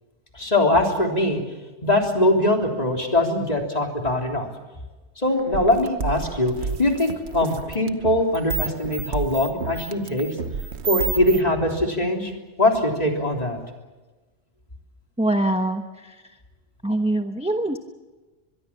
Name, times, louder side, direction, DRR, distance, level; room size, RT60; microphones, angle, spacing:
voice 1, 0.3-1.4 1.8-4.5 5.2-6.5 6.8-10.3 10.9-12.3 12.6-13.6, left 1 dB, 35° left, 2 dB, 3.6 m, -22 dB
sound 1, 5.3-11.4, right 5 dB, 70° right, 1.4 m, -30 dB
voice 2, 15.2-16.2 16.8-17.8, right 1 dB, 5° right, 5 dB, 1.1 m, -24 dB
24.0 x 22.5 x 7.3 m, 1.2 s
omnidirectional pair, 1.2 m